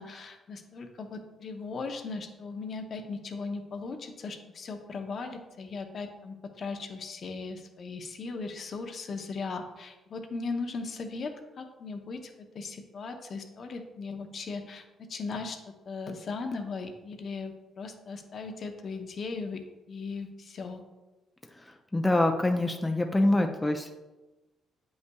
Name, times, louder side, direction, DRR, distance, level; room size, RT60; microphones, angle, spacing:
voice 1, 0.0-20.8, left 4 dB, 55° left, 5 dB, 0.7 m, -38 dB
voice 2, 21.9-24.0, left 1 dB, 15° left, 4 dB, 0.5 m, -25 dB
8.0 x 5.5 x 2.3 m, 1.1 s
cardioid pair, 90°, 0 cm